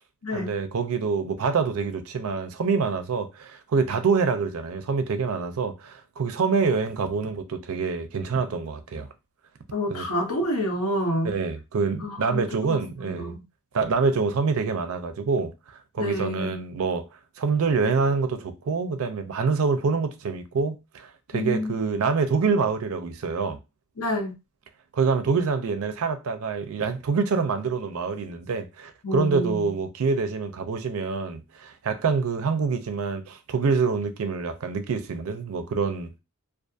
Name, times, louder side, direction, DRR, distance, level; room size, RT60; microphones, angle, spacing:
voice 1, 0.3-9.1 9.9-10.0 11.2-13.3 13.7-17.1 17.4-23.6 24.9-36.1, right 5 dB, 70° right, 0.4 m, -26 dB
voice 2, 9.7-11.4 12.0-13.4 16.0-16.6 21.3-21.7 24.0-24.3 29.0-29.7, equal, 85° left, 0.9 m, -28 dB
2.6 x 2.4 x 2.3 m
head